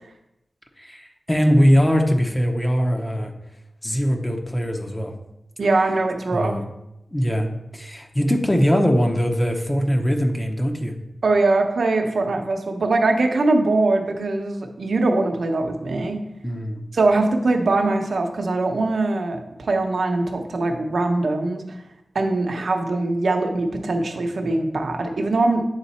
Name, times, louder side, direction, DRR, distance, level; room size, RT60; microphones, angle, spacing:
voice 1, 0.8-3.3 3.8-5.1 6.3-6.6 7.1-10.9 16.4-16.8, equal, 15° left, 3 dB, 0.7 m, -21 dB
voice 2, 5.6-6.6 11.2-16.2 16.9-21.6 22.1-25.8, right 2 dB, 75° right, 4 dB, 0.8 m, -22 dB
8.1 x 4.0 x 4.2 m, 0.88 s
wide cardioid pair, 115°, 0 cm